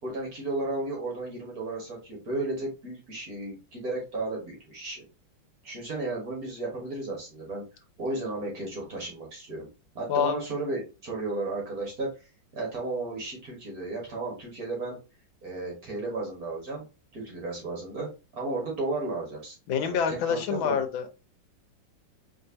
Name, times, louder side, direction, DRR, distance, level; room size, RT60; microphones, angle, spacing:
voice 1, 0.0-5.0 5.6-7.6 8.0-9.7 9.9-12.1 12.5-15.0 15.4-16.8 17.1-19.5 19.8-20.8, right 2 dB, 50° right, -2 dB, 2.1 m, -34 dB
voice 2, 19.7-21.1, left 7 dB, 90° left, 7 dB, 1.6 m, -26 dB
4.6 x 3.4 x 2.8 m, 0.29 s
omnidirectional pair, 2.1 m